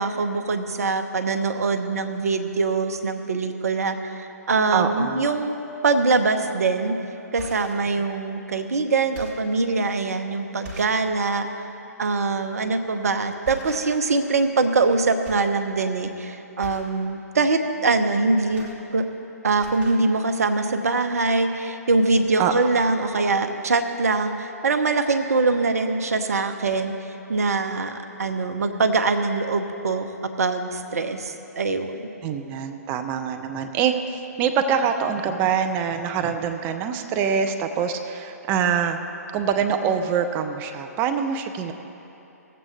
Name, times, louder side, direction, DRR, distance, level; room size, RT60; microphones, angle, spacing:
voice 1, 0.0-5.6 5.8-6.9 7.3-11.5 12.0-18.7 18.9-19.0 19.4-26.9 27.3-30.1 30.4-32.1, right 3 dB, 65° right, 7 dB, 0.8 m, -23 dB
voice 2, 4.7-5.2 22.4-22.5 32.2-39.0 39.3-41.7, right 7 dB, 25° right, 7 dB, 0.5 m, -24 dB
sound 1, 6.5-6.6 7.2-7.9 8.5-8.7 9.0-9.5 10.1-10.2 10.6-11.0 11.4-11.6 12.8-13.0 13.4-14.2 14.5-15.0 15.2-15.6 15.9-16.1 16.6-17.0 18.2-19.3 19.5-20.1 20.8-20.9 21.2-21.3, equal, 40° right, 1.8 m, -42 dB
18.0 x 7.7 x 3.3 m, 3.0 s
figure-of-eight pair, 125°, 9 cm